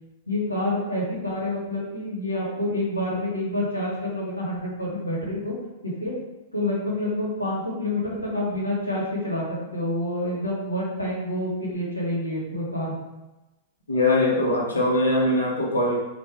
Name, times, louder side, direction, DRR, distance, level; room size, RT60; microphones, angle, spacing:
voice 1, 0.3-5.5 5.8-6.1 6.5-12.9, left 1 dB, 85° left, -5 dB, 1.3 m, -28 dB
voice 2, 13.9-16.0, left 1 dB, 70° left, -3 dB, 1.0 m, -21 dB
4.4 x 2.5 x 3.4 m, 1.0 s
figure-of-eight pair, 100°, 0 cm